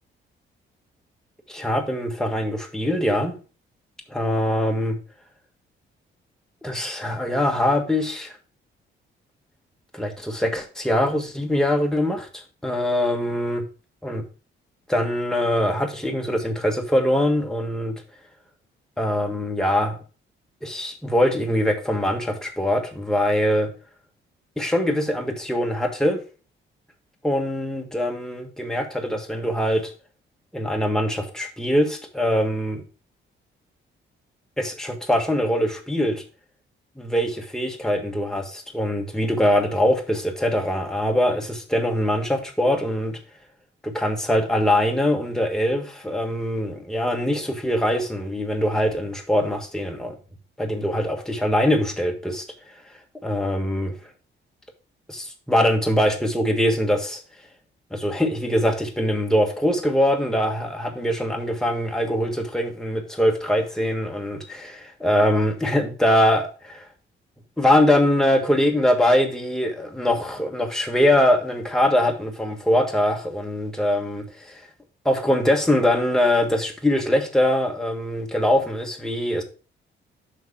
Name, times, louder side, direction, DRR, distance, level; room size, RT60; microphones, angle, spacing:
voice 1, 1.5-3.3 4.1-5.0 6.6-8.4 9.9-13.6 14.0-14.2 14.9-18.0 19.0-20.0 20.6-23.7 24.6-26.2 27.2-29.9 30.5-32.8 34.6-36.2 37.0-43.2 43.8-50.2 50.6-52.4 53.2-53.9 55.1-57.2 57.9-64.4 65.0-66.9 67.6-74.7 75.0-79.4, left 1 dB, 5° left, 1.5 m, -22 dB
6.4 x 5.6 x 4.8 m
cardioid pair, 135°, 21 cm